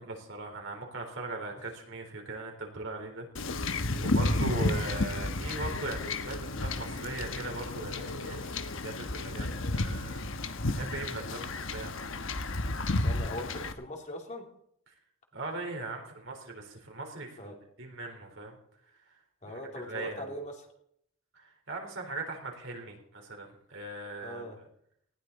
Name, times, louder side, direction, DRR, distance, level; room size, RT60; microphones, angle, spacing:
voice 1, 0.0-8.5 8.8-10.3 10.7-12.1 14.9-15.0 15.3-18.6 19.4-20.3 21.3-24.4, right 2 dB, 65° right, 2 dB, 4.1 m, -39 dB
Wind / Ocean / Boat Water vehicle, 3.4-13.7, left 2 dB, 70° left, 1.2 m, -32 dB
voice 2, 12.8-14.5 17.4-17.6 19.4-20.7 24.2-24.6, left 1 dB, 35° left, 1 dB, 2.8 m, -41 dB
19.0 x 15.5 x 4.2 m, 0.71 s
head